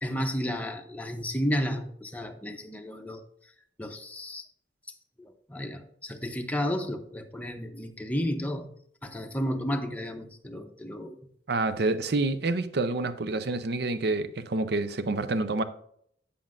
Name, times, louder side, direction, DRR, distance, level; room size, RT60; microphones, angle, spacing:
voice 1, 0.0-3.3 3.8-4.5 5.2-8.7 9.0-11.2, equal, 10° left, 0.7 m, -32 dB
voice 2, 11.5-15.6, right 2 dB, 65° right, 0.6 m, -28 dB
8.4 x 7.6 x 2.5 m
head